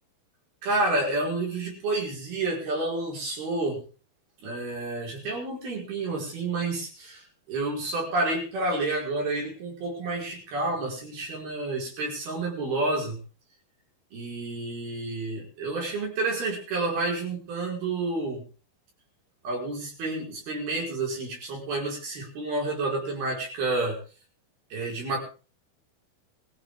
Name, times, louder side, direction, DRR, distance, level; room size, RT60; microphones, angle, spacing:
voice 1, 0.6-3.8 4.4-13.2 14.1-18.4 19.4-24.0 24.7-25.2, right 2 dB, 80° right, -1 dB, 7.0 m, -29 dB
20.5 x 15.5 x 3.8 m, 0.36 s
omnidirectional pair, 4.3 m